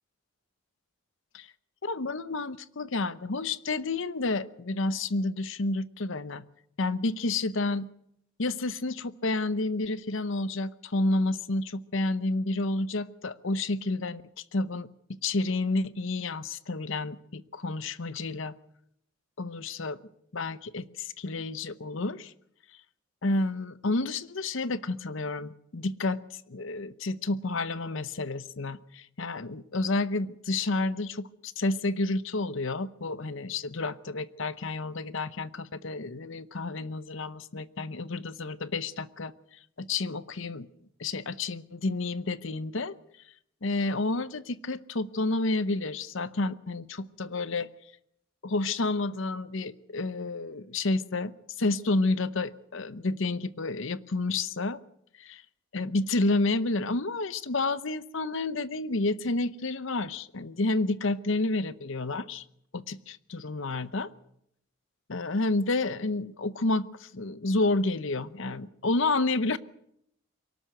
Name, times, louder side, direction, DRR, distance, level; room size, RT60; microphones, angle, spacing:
voice 1, 1.8-6.4 6.8-7.9 8.4-14.2 14.5-14.9 15.2-18.5 19.4-20.0 20.3-22.3 23.2-39.3 39.8-40.7 41.0-43.0 43.6-47.7 48.4-51.3 51.6-54.8 55.2-55.4 55.7-62.4 62.7-64.1 65.1-69.6, left 2 dB, 60° left, 15 dB, 0.8 m, -30 dB
23.5 x 12.5 x 9.2 m, 0.75 s
head